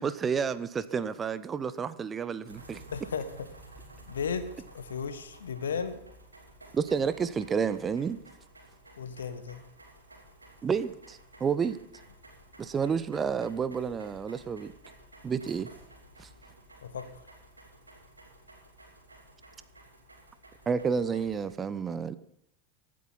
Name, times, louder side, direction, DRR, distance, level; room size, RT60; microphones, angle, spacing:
voice 1, 0.0-2.8 6.7-8.2 10.6-11.8 12.6-14.7 15.2-15.7 16.2-16.3 20.7-22.1, right 6 dB, 25° right, 0.7 m, -30 dB
sound 1, 2.4-21.5, right 1 dB, 85° right, 2.8 m, -53 dB
voice 2, 2.9-3.3 4.1-6.0 9.0-9.6 16.8-17.2, left 6 dB, 70° left, 1.2 m, -35 dB
23.0 x 8.5 x 4.1 m
figure-of-eight pair, 80°, 0 cm